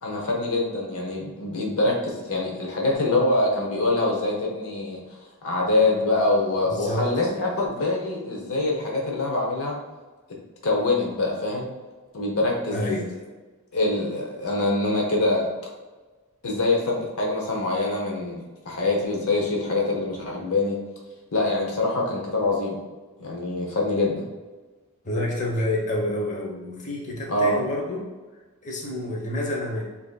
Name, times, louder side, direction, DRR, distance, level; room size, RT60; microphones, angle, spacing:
voice 1, 0.0-5.0 5.4-9.8 10.6-11.7 12.1-12.8 13.7-15.5 16.4-20.8 21.3-22.8 23.2-24.2 27.3-27.6, left 2 dB, 65° left, -1 dB, 0.8 m, -24 dB
voice 2, 6.6-7.1 12.7-13.1 25.0-28.0 28.6-29.8, left 1 dB, 35° left, -2 dB, 0.9 m, -28 dB
7.5 x 2.8 x 2.3 m, 1.3 s
head